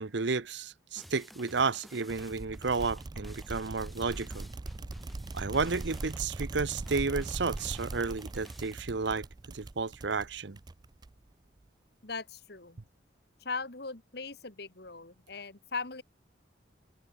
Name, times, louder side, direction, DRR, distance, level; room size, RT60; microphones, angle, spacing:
voice 1, 0.0-4.5 5.3-10.6, right 4 dB, 70° right, 0.8 m, -32 dB
sound 1, 1.0-8.7, equal, ahead, 2.3 m, -52 dB
sound 2, 2.1-11.3, right 2 dB, 20° right, 0.3 m, -41 dB
voice 2, 12.0-12.8 13.4-16.0, left 4 dB, 55° left, 2.1 m, -39 dB
open air
head